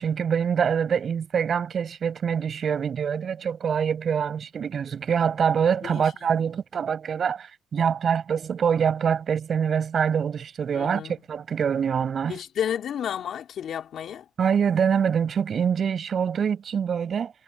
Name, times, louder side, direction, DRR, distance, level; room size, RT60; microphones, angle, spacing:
voice 1, 0.0-12.4 14.4-17.3, right 7 dB, 50° right, 7.2 m, -25 dB
voice 2, 5.8-6.4 10.7-11.2 12.3-14.3, left 9 dB, 65° left, 4.3 m, -32 dB
cardioid pair, 90°, 0 cm